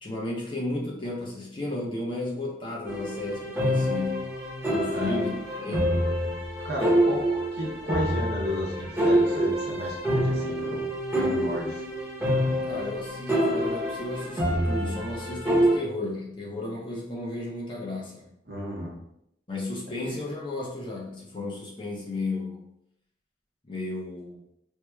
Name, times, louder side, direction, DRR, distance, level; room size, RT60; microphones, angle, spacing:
voice 1, 0.0-4.2 4.7-6.0 12.7-18.3 19.5-22.7 23.7-24.4, left 2 dB, 25° left, -3 dB, 0.6 m, -33 dB
sound 1, 2.9-15.8, equal, 10° right, 0.8 m, -26 dB
voice 2, 6.6-10.9 11.1-11.8 18.5-19.0, equal, 55° right, -3 dB, 0.8 m, -33 dB
4.5 x 2.1 x 2.3 m, 0.75 s
head